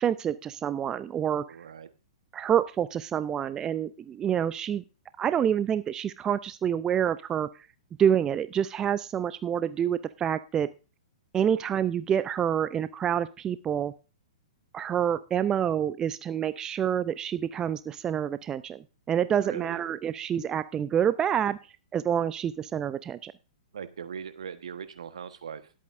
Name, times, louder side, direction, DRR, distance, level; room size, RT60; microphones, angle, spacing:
voice 1, 0.0-1.4 2.3-4.8 5.2-7.5 8.0-10.7 11.3-13.9 14.7-21.6 21.9-23.3, right 9 dB, 20° right, 14 dB, 0.5 m, -27 dB
voice 2, 1.5-1.9 19.4-19.8 23.7-25.7, right 7 dB, 70° right, 10 dB, 1.3 m, -40 dB
20.0 x 8.5 x 2.6 m, 0.32 s
figure-of-eight pair, 110°, 3 cm